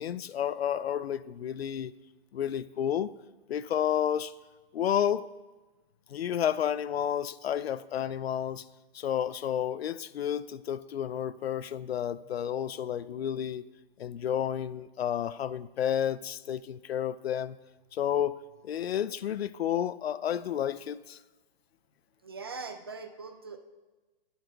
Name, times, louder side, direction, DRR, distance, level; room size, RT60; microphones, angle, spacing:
voice 1, 0.0-1.9 2.3-3.1 3.5-4.3 4.7-5.2 6.1-8.6 8.9-13.6 14.0-17.6 17.9-18.4 18.6-21.2, left 10 dB, 90° left, 0.5 m, -31 dB
voice 2, 22.2-23.6, right 4 dB, 25° right, 0.4 m, -41 dB
21.0 x 8.0 x 2.3 m
hypercardioid pair, 165°, 30 cm